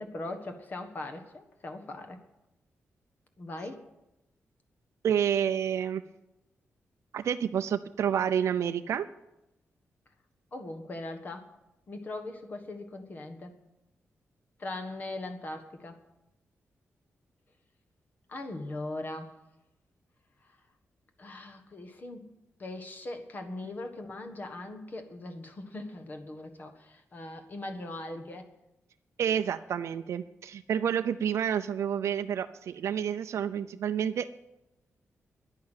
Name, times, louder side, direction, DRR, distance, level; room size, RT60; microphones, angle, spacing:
voice 1, 0.0-2.2 3.4-3.8 10.5-11.5 11.9-13.6 14.6-16.0 18.3-19.3 21.2-22.3 22.6-28.5, left 2 dB, 40° left, 5 dB, 1.4 m, -40 dB
voice 2, 5.0-6.0 7.1-9.1 29.2-34.3, right 8 dB, 80° right, 9 dB, 0.5 m, -29 dB
10.5 x 10.5 x 9.1 m, 0.92 s
wide cardioid pair, 165°, 5 cm